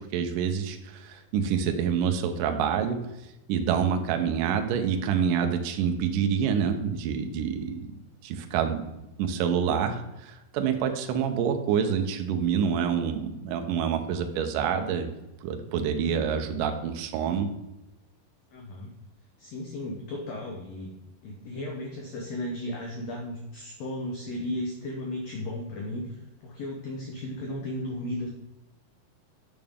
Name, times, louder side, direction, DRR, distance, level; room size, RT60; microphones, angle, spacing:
voice 1, 0.1-3.0 3.5-7.9 8.2-8.8 9.2-15.1 15.4-17.5, right 7 dB, 75° right, 5 dB, 2.2 m, -27 dB
voice 2, 18.5-18.9 19.4-20.9 21.2-28.3, left 1 dB, 70° left, 0 dB, 1.6 m, -35 dB
8.8 x 6.3 x 3.6 m, 0.94 s
omnidirectional pair, 4.3 m